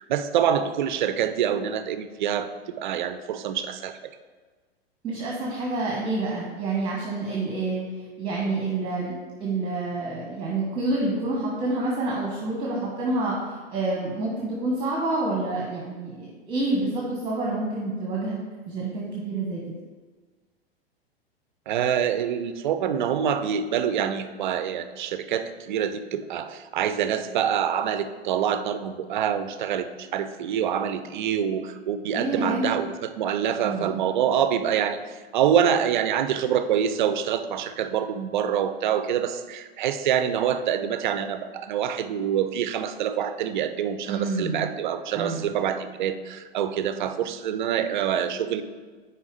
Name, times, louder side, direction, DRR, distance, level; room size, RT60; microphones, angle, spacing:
voice 1, 0.0-4.0 21.7-48.6, right 9 dB, 50° right, 10 dB, 0.5 m, -26 dB
voice 2, 5.0-7.8 8.2-9.1 9.4-19.6 32.1-32.7 33.6-34.0 44.1-44.7 45.1-45.6, right 2 dB, 15° right, -3 dB, 1.2 m, -28 dB
9.5 x 4.7 x 3.4 m, 1.4 s
figure-of-eight pair, 95°, 32 cm